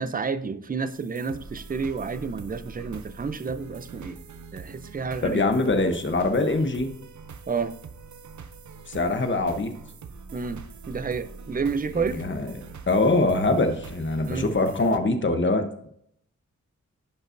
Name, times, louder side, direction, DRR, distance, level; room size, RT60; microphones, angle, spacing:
voice 1, 0.0-4.2 4.5-5.4 7.5-7.7 10.3-12.2 14.3-14.5 15.5-15.6, right 5 dB, 30° right, 12 dB, 0.5 m, -30 dB
sound 1, 0.9-15.0, right 5 dB, 70° right, 0.6 m, -43 dB
voice 2, 5.2-6.9 8.9-9.7 12.0-12.5 12.9-15.9, left 2 dB, 40° left, 7 dB, 0.9 m, -23 dB
10.5 x 5.4 x 2.6 m, 0.69 s
wide cardioid pair, 105°, 30 cm